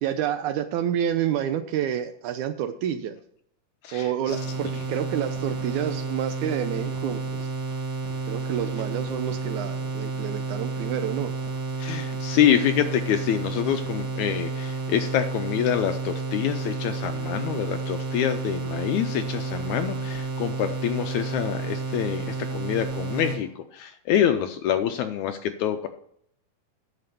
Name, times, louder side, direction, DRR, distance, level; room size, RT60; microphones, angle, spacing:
voice 1, 0.0-3.2 3.9-7.5 8.3-11.3, right 10 dB, 80° right, 9 dB, 1.8 m, -29 dB
voice 2, 3.8-4.4 4.7-4.8 11.8-25.9, left 10 dB, 80° left, 8 dB, 1.8 m, -26 dB
sound 1, 4.3-23.4, right 4 dB, 55° right, 2.7 m, -31 dB
9.2 x 6.6 x 6.7 m, 0.69 s
omnidirectional pair, 3.8 m